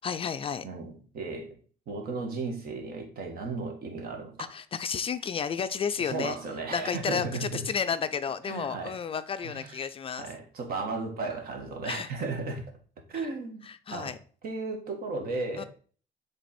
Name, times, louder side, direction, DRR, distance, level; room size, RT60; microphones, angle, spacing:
voice 1, 0.0-0.7 4.4-6.4 6.7-10.3 11.8-12.1 13.1-13.3 13.6-14.2 15.6-15.7, left 6 dB, 35° left, 0.4 m, -32 dB
voice 2, 0.6-1.6 1.9-4.5 6.0-7.6 8.4-9.0 9.4-9.8 10.1-12.6 13.1-14.1 14.4-15.7, right 3 dB, 65° right, 1.5 m, -35 dB
7.1 x 3.4 x 4.3 m
cardioid pair, 110°, 17 cm